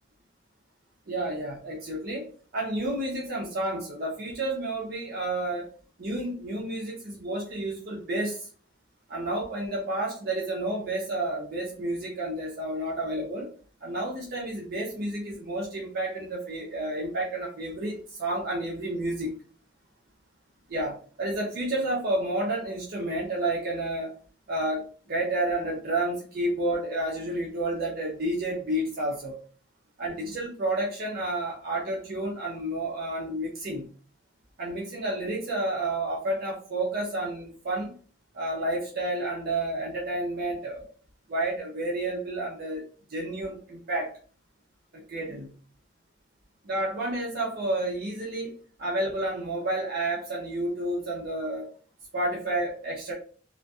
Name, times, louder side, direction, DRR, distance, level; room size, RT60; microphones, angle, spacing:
voice 1, 1.1-2.3 2.5-5.7 6.0-8.5 9.1-13.5 13.8-19.4 20.7-24.1 24.5-29.4 30.0-33.9 34.6-37.9 38.3-40.8 41.3-42.8 43.1-44.1 44.9-45.5 46.6-48.5 48.8-51.7 52.1-53.1, right 1 dB, 50° right, -4 dB, 0.5 m, -30 dB
2.5 x 2.2 x 2.2 m, 0.42 s
head